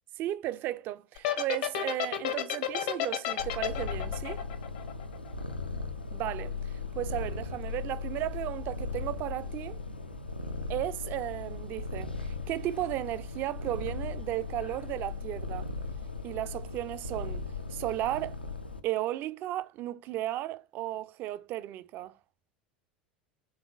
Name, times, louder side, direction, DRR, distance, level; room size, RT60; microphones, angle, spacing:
voice 1, 0.2-4.4 6.1-9.8 10.7-15.7 16.2-17.4 17.7-18.4 18.8-22.1, right 14 dB, 40° right, 0.3 m, -35 dB
sound 1, 1.2-5.5, left 11 dB, 60° left, 0.7 m, -31 dB
Purr, 3.4-18.8, left 4 dB, 90° left, 0.5 m, -37 dB
3.9 x 3.5 x 2.3 m
figure-of-eight pair, 80°, 5 cm